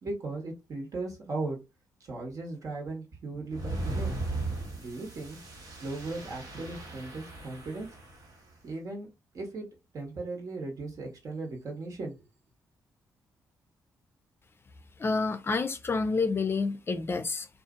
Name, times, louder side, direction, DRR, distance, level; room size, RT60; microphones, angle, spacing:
voice 1, 0.0-1.6 2.0-4.1 4.8-5.4 5.8-7.9 8.6-9.1 9.3-9.7 9.9-12.1, right 3 dB, 55° right, 1.2 m, -37 dB
sound 1, 3.5-8.4, right 2 dB, 75° right, 1.4 m, -37 dB
voice 2, 15.0-17.5, left 4 dB, 35° left, 0.4 m, -28 dB
2.7 x 2.4 x 2.5 m
cardioid pair, 70°, 7 cm